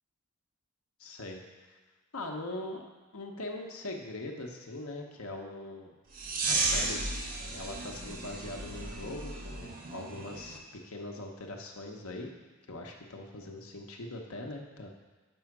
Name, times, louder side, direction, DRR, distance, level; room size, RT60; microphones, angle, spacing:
voice 1, 1.0-1.4 1.7-1.8 2.1-2.8 3.1-5.9 6.4-7.0 7.5-12.3 12.7-14.9, left 2 dB, 70° left, 2 dB, 1.0 m, -41 dB
sound 1, 6.1-10.6, right 3 dB, 40° right, 0.8 m, -34 dB
6.3 x 5.5 x 5.9 m, 1.3 s
head